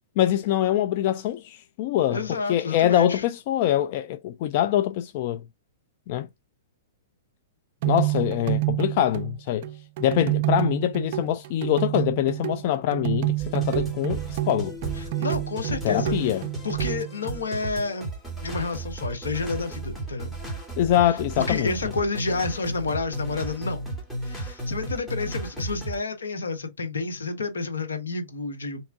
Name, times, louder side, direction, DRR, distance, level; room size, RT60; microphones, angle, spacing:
voice 1, 0.2-2.2 2.5-5.4 6.1-6.3 7.8-9.7 10.0-14.8 15.8-16.4 20.8-21.7, left 12 dB, 50° left, 0.3 m, -24 dB
voice 2, 2.1-3.2 15.0-16.3 16.6-18.1 18.4-20.3 21.5-23.8 24.2-28.9, left 4 dB, 80° left, 1.1 m, -30 dB
sound 1, 7.8-17.4, right 18 dB, 50° right, 0.4 m, -28 dB
sound 2, 13.4-26.0, right 2 dB, 5° left, 2.2 m, -34 dB
3.5 x 3.0 x 3.5 m
hypercardioid pair, 115°, 0 cm